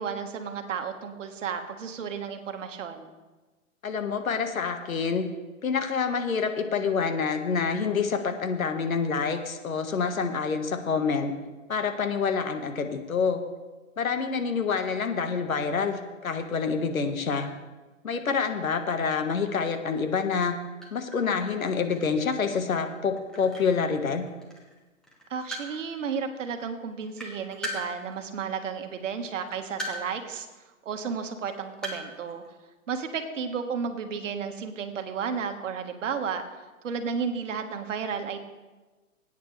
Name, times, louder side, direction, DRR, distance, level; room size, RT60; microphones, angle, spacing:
voice 1, 0.0-3.1 25.3-30.5 30.8-32.4 32.9-36.4 36.8-38.4, right 6 dB, 65° right, 6 dB, 1.6 m, -33 dB
voice 2, 3.8-5.2 5.6-11.3 11.7-13.4 14.0-17.5 18.0-20.5 20.9-24.2, left 5 dB, 85° left, 6 dB, 1.5 m, -27 dB
sound 1, 20.8-24.8 25.0-26.0 26.5-26.6 26.9-28.6 29.2-30.2 30.5-30.6 31.2-32.5, equal, ahead, 1.6 m, -39 dB
19.0 x 9.2 x 3.3 m, 1.2 s
hypercardioid pair, 140°, 40 cm